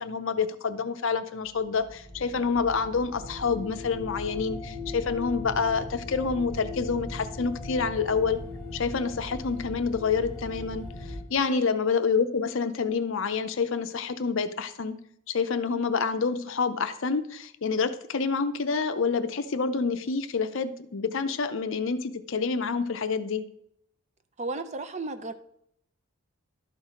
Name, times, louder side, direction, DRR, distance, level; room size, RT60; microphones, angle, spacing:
voice 1, 0.0-8.4 8.7-10.8 11.3-15.0 15.3-23.4, left 5 dB, 55° left, 11 dB, 0.6 m, -28 dB
sound 1, 1.4-11.2, left 2 dB, ahead, 3.1 m, -39 dB
voice 2, 24.4-25.3, right 2 dB, 30° right, 9 dB, 0.5 m, -34 dB
12.0 x 4.6 x 5.0 m, 0.72 s
head